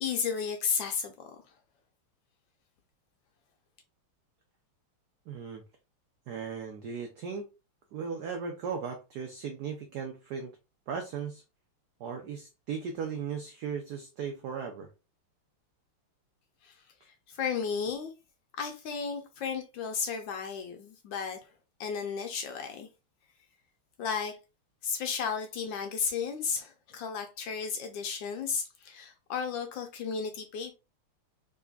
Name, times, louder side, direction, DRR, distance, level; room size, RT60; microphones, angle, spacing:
voice 1, 0.0-1.4 16.6-16.8 17.1-18.1 18.6-21.4 21.8-22.9 24.0-24.4 24.8-30.7, left 6 dB, 75° left, 1.2 m, -33 dB
voice 2, 5.3-5.6 6.3-7.5 7.9-10.5 10.9-11.4 12.0-14.9, right 6 dB, 85° right, 0.9 m, -37 dB
3.7 x 3.2 x 2.3 m
omnidirectional pair, 2.4 m